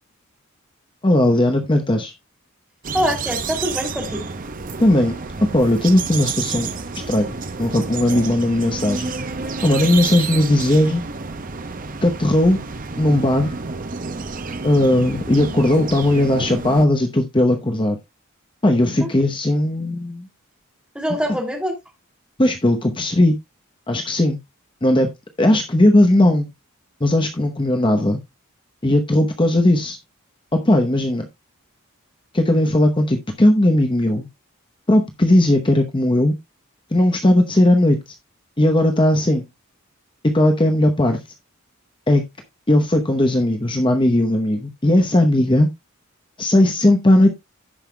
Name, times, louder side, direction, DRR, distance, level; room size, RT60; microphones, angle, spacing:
voice 1, 1.0-2.1 4.8-5.1 5.5-6.7 7.1-9.1 9.6-11.0 12.0-12.6 13.0-13.5 14.6-18.0 18.6-20.3 22.4-23.4 23.9-24.4 24.8-25.1 25.4-26.5 27.0-28.2 28.8-30.0 30.5-31.2 32.3-34.3 34.9-36.3 36.9-38.0 38.6-39.4 40.3-41.2 42.1-42.2 42.7-45.7 46.4-47.3, left 1 dB, 25° left, 0.8 m, -17 dB
sound 1, 2.8-16.9, right 4 dB, 40° right, 0.8 m, -29 dB
voice 2, 2.9-4.2 18.9-19.1 20.9-21.8, equal, 5° right, 2.6 m, -24 dB
16.0 x 5.5 x 2.2 m
head